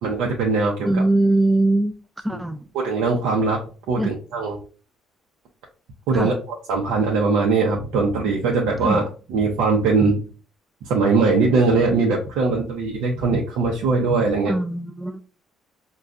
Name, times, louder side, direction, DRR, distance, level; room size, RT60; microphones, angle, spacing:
voice 1, 0.0-1.0 2.7-3.6 3.9-4.6 6.1-6.3 6.7-10.2 10.8-14.5, right 4 dB, 85° right, -1 dB, 0.7 m, -21 dB
voice 2, 0.8-2.0 2.2-2.7 4.0-4.1 6.1-6.4 8.8-9.0 14.4-15.2, right 2 dB, 5° right, 10 dB, 0.4 m, -21 dB
5.0 x 2.3 x 2.4 m, 0.37 s
cardioid pair, 90°, 0 cm